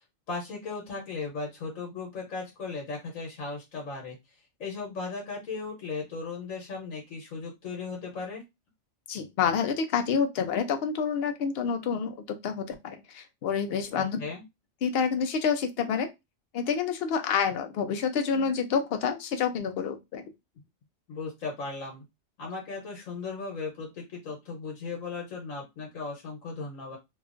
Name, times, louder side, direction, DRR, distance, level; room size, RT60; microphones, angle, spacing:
voice 1, 0.3-4.2 4.6-8.4 13.9-14.4 21.1-22.0 22.4-27.0, left 4 dB, 80° left, 0 dB, 1.2 m, -37 dB
voice 2, 9.1-14.2 14.8-16.1 16.5-20.2, left 6 dB, 60° left, 7 dB, 0.7 m, -28 dB
2.8 x 2.4 x 2.4 m, 0.21 s
omnidirectional pair, 1.4 m